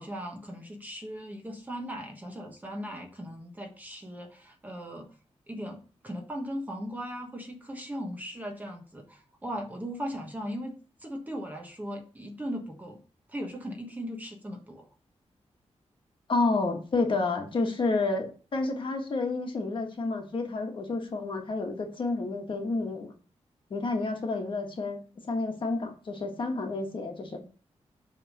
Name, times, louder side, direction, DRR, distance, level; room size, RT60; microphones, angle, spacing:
voice 1, 0.0-5.1 5.5-5.8 6.0-13.0 13.3-14.8, equal, 15° right, 1 dB, 1.3 m, -38 dB
voice 2, 16.3-23.1 23.7-25.0 25.3-27.4, left 3 dB, 45° left, 3 dB, 1.5 m, -30 dB
7.9 x 3.6 x 6.6 m, 0.37 s
wide cardioid pair, 170°, 11 cm